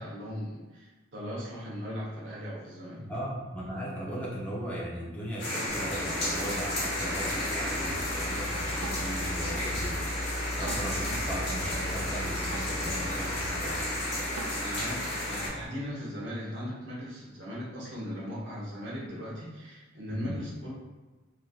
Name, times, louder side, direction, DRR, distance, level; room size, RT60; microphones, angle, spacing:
voice 1, 0.0-3.1 14.6-20.7, equal, 65° right, -6 dB, 0.9 m, -38 dB
voice 2, 3.0-13.9 20.1-20.4, equal, 5° left, -6 dB, 0.5 m, -38 dB
sound 1, 5.4-15.5, left 1 dB, 50° left, 1.1 m, -32 dB
sound 2, 5.7-15.7, left 1 dB, 35° right, 1.0 m, -39 dB
Drum kit, 7.9-15.1, right 2 dB, 90° right, 0.4 m, -44 dB
3.1 x 2.5 x 2.3 m, 1.2 s
head